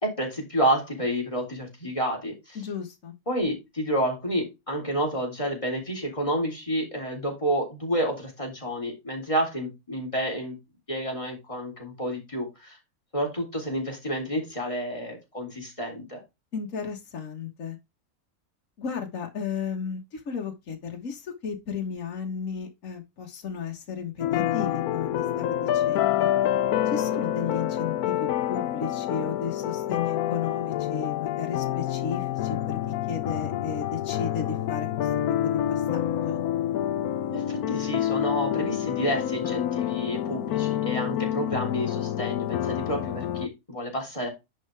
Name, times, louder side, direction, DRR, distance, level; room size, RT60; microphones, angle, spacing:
voice 1, 0.0-2.6 3.3-10.6 10.9-12.8 13.1-16.2 37.3-44.3, equal, 20° left, 3.5 m, -29 dB
voice 2, 2.6-3.1 16.5-17.8 18.8-26.3 26.9-32.8 33.1-35.1 35.4-36.4, left 6 dB, 60° left, 1.8 m, -34 dB
sound 1, 24.2-43.5, left 11 dB, 80° left, 1.1 m, -27 dB
10.0 x 5.7 x 3.4 m
omnidirectional pair, 1.6 m